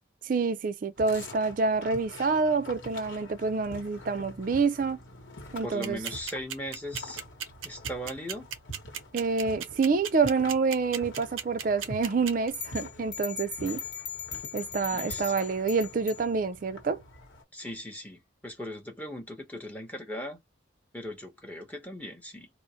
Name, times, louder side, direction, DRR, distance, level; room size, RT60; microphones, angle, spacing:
voice 1, 0.2-5.0 5.5-6.0 9.1-13.8 14.5-17.0, right 4 dB, 45° right, 0.4 m, -27 dB
sound 1, 1.0-17.4, equal, 75° left, 1.0 m, -46 dB
voice 2, 5.6-7.2 7.6-8.5 14.9-15.3 17.5-20.4 20.9-22.5, equal, 10° left, 0.8 m, -39 dB
sound 2, 5.8-12.5, right 8 dB, 90° right, 0.6 m, -35 dB
sound 3, 12.5-16.2, left 7 dB, 55° left, 1.1 m, -39 dB
3.7 x 2.0 x 2.7 m
head